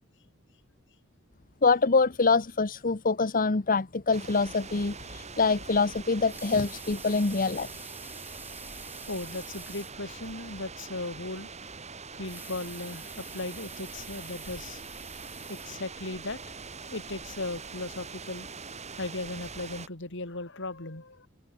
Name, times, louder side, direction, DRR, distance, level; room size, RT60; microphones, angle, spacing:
voice 1, 1.6-7.7, left 4 dB, 40° left, 1.0 m, -25 dB
sound 1, 4.1-19.9, right 4 dB, 30° right, 5.5 m, -43 dB
Water tap faucet / Sink (filling or washing) / Liquid, 6.3-10.0 10.5-10.6 10.9-11.0 12.1-16.2 16.8-16.9, right 3 dB, 10° right, 3.0 m, -48 dB
voice 2, 9.1-11.5 12.2-14.8 15.5-16.4 16.9-18.5 19.0-21.3, left 2 dB, 60° left, 3.3 m, -37 dB
open air
head